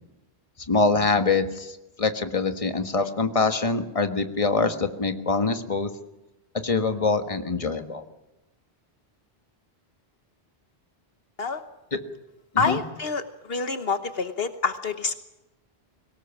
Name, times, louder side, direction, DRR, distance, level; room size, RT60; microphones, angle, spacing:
voice 1, 0.7-5.9 6.6-8.0 11.9-12.0 12.5-12.8, left 4 dB, 35° left, 8 dB, 1.6 m, -24 dB
voice 2, 12.6-13.2 13.5-15.2, left 4 dB, 70° left, 9 dB, 1.3 m, -27 dB
23.0 x 18.5 x 7.2 m, 0.98 s
omnidirectional pair, 1.1 m